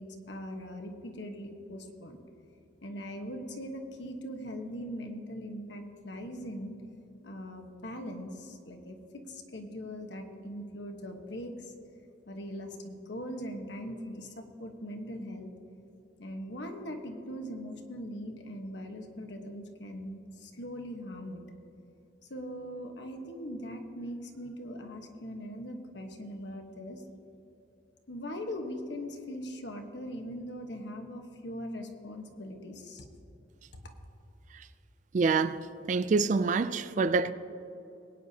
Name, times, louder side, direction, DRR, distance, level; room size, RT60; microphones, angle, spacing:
voice 1, 0.0-2.2 2.8-6.8 7.2-11.5 12.3-15.5 16.2-21.4 22.3-27.0 28.1-33.1, equal, 70° left, 1.2 m, -40 dB
voice 2, 35.1-37.3, right 4 dB, 40° right, 0.3 m, -27 dB
21.5 x 9.5 x 2.8 m
head